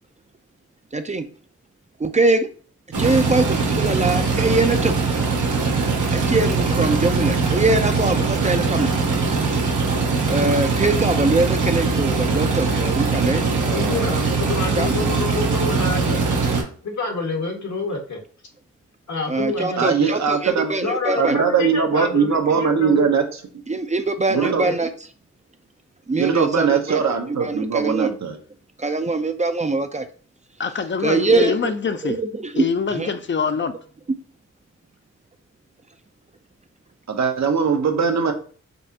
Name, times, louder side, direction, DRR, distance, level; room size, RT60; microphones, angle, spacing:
voice 1, 0.9-1.3 2.0-2.5 3.0-4.9 6.1-8.9 10.3-14.4 14.8-14.9 19.3-21.4 23.7-24.9 26.1-27.0 27.3-28.2 28.8-30.1 31.0-31.7 32.0-32.6 32.9-33.1, right 3 dB, 25° right, 0.4 m, -22 dB
sound 1, 2.9-16.6, right 4 dB, 85° right, 1.1 m, -21 dB
voice 2, 13.7-16.2 16.8-18.2 19.1-20.1 20.8-23.1 24.3-24.7, left 3 dB, 70° left, 1.3 m, -28 dB
voice 3, 19.8-20.7 21.1-23.2 24.3-24.6 26.2-28.4 37.1-38.3, right 6 dB, 65° right, 0.8 m, -20 dB
voice 4, 30.6-32.2 32.6-33.7, left 5 dB, 40° left, 0.5 m, -24 dB
5.3 x 2.4 x 2.8 m
cardioid pair, 70°, 30 cm